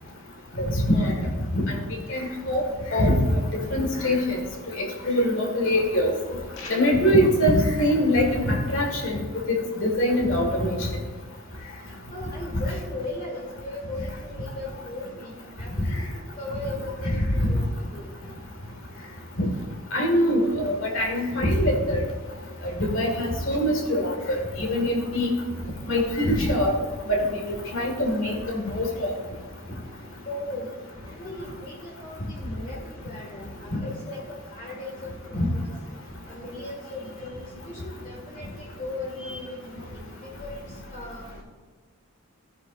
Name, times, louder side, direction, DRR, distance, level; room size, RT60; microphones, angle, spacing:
voice 1, 0.6-1.1 1.6-1.8 2.1-2.6 2.9-3.2 3.7-4.4 4.8-6.1 6.7-9.2 9.8-10.9 19.4-19.5 19.9-22.0 22.8-25.4 25.9-26.8 27.1-29.1 35.3-35.5, equal, 60° left, 1 dB, 2.0 m, -23 dB
sound 1, 6.5-7.3, left 4 dB, 75° left, 1.5 m, -42 dB
voice 2, 12.1-18.2 23.5-23.6 30.3-30.8 31.1-35.7 36.2-41.2, left 2 dB, 35° left, -2 dB, 2.0 m, -38 dB
15.0 x 9.6 x 2.6 m, 1.4 s
head